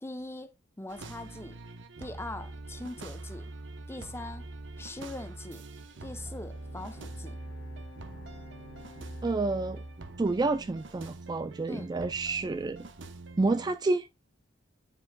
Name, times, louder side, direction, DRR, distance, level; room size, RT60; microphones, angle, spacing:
voice 1, 0.0-1.6 2.0-3.5 3.9-4.5 4.8-5.6 6.0-7.4 11.7-11.9, left 2 dB, 15° left, 0.7 m, -42 dB
sound 1, 0.9-13.8, right 2 dB, 65° right, 0.9 m, -44 dB
Bowed string instrument, 5.7-11.1, left 3 dB, 70° left, 1.3 m, -54 dB
voice 2, 9.2-9.8 10.2-12.9 13.4-14.1, right 3 dB, 20° right, 0.3 m, -29 dB
7.6 x 7.1 x 2.2 m
head